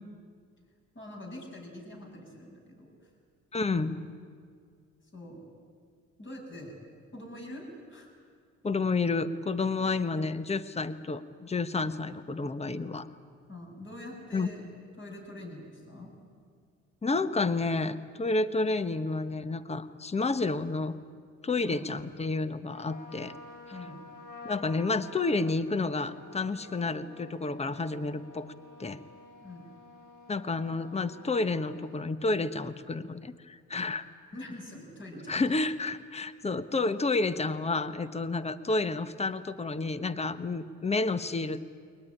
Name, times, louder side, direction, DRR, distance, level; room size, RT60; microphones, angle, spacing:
voice 1, 0.9-3.1 3.7-3.9 5.0-5.5 6.2-6.8 7.1-8.1 11.8-12.0 13.5-14.6 15.0-16.1 21.6-21.9 23.7-24.0 29.4-29.7 34.3-35.4, left 1 dB, 40° left, -1 dB, 7.8 m, -44 dB
voice 2, 3.5-4.0 8.6-13.1 14.3-14.5 17.0-21.0 21.4-23.3 24.4-28.5 28.8-29.0 30.3-34.1 35.3-41.6, left 3 dB, 20° left, 13 dB, 1.1 m, -30 dB
Trumpet, 22.7-32.0, left 2 dB, 90° left, 4.2 m, -50 dB
22.5 x 19.5 x 10.0 m, 2.1 s
cardioid pair, 90°, 30 cm